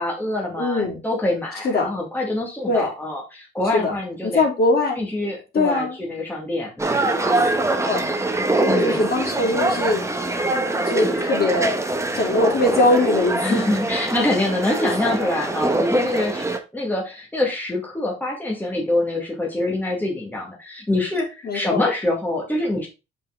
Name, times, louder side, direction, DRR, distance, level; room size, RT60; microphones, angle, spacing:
voice 1, 0.0-4.4 5.0-7.1 8.6-9.1 11.0-11.3 13.4-22.9, left 2 dB, 10° left, -2 dB, 2.2 m, -25 dB
voice 2, 0.6-1.0 1.6-1.9 2.7-2.9 3.7-3.9 4.2-5.0 5.5-6.0 7.9-8.1 8.6-11.8 12.1-13.8 21.4-21.9, left 2 dB, 50° left, 0 dB, 3.3 m, -22 dB
sound 1, 6.8-16.6, right 2 dB, 15° right, 1.2 m, -23 dB
5.6 x 5.4 x 3.8 m, 0.27 s
cardioid pair, 90°, 20 cm